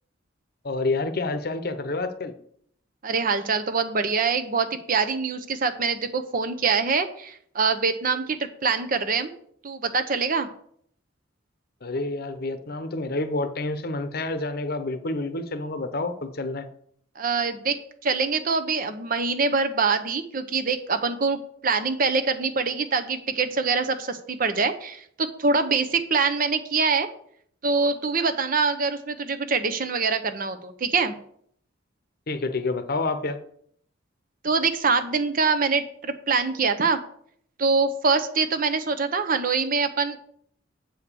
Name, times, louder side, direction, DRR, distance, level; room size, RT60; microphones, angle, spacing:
voice 1, 0.6-2.4 11.8-16.7 32.3-33.4, left 2 dB, 50° left, 10 dB, 0.9 m, -28 dB
voice 2, 3.0-9.3 9.6-10.5 17.2-27.1 27.6-31.1 34.4-37.0 37.6-40.2, right 4 dB, 45° right, 9 dB, 0.8 m, -24 dB
8.0 x 5.0 x 6.8 m, 0.64 s
head